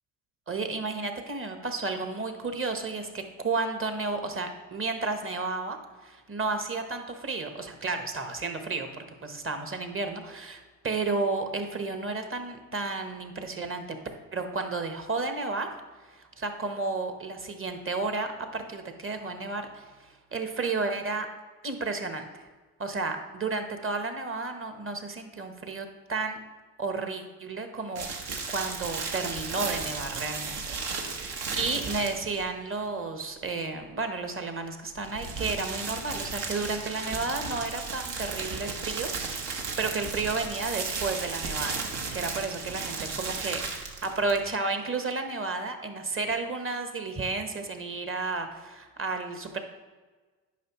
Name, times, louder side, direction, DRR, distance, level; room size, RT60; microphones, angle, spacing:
voice 1, 0.5-14.0 14.3-15.7 16.0-21.3 21.6-22.5 22.8-26.4 26.8-39.5 39.8-41.8 42.1-49.6, right 3 dB, 30° right, 6 dB, 1.1 m, -32 dB
sound 1, 27.9-32.4 34.9-44.5, right 4 dB, 65° right, 1.3 m, -35 dB
9.3 x 5.5 x 3.0 m, 1.3 s
hypercardioid pair, 65°, 45 cm